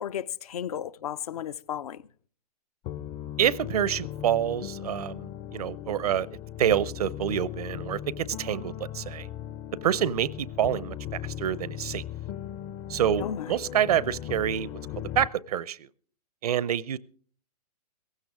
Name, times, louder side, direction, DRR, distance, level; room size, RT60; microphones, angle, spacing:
voice 1, 0.0-2.0 13.2-13.6, left 9 dB, 65° left, 0.7 m, -34 dB
sound 1, 2.8-15.3, left 10 dB, 25° left, 0.6 m, -38 dB
voice 2, 3.4-6.3 6.6-9.3 9.8-11.0 11.2-12.0 12.9-14.7 15.1-15.9 16.4-17.0, right 10 dB, 70° right, 0.6 m, -27 dB
17.5 x 15.5 x 3.6 m
hypercardioid pair, 130°, 20 cm